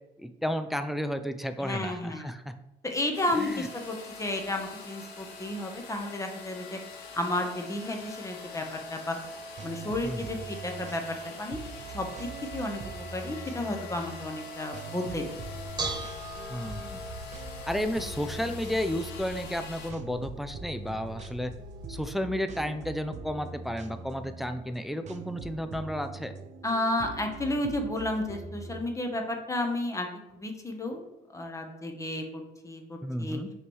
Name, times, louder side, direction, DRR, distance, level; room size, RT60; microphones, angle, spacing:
voice 1, 0.2-2.6 3.4-3.7 10.0-10.2 16.5-17.0 17.7-21.5 21.9-26.3 33.0-33.5, equal, ahead, 8 dB, 0.4 m, -32 dB
voice 2, 1.6-2.3 2.8-6.8 7.1-9.2 9.6-11.6 11.9-15.3 26.6-31.0 31.3-33.4, left 1 dB, 20° left, 3 dB, 0.9 m, -32 dB
sound 1, 3.1-19.9, left 3 dB, 80° left, 1.2 m, -44 dB
sound 2, 9.2-28.8, right 4 dB, 45° right, 0.6 m, -43 dB
Bell / Dishes pots and pans, 15.4-22.0, right 1 dB, 25° right, 1.4 m, -41 dB
5.6 x 3.1 x 5.4 m, 0.89 s
cardioid pair, 110°, 17 cm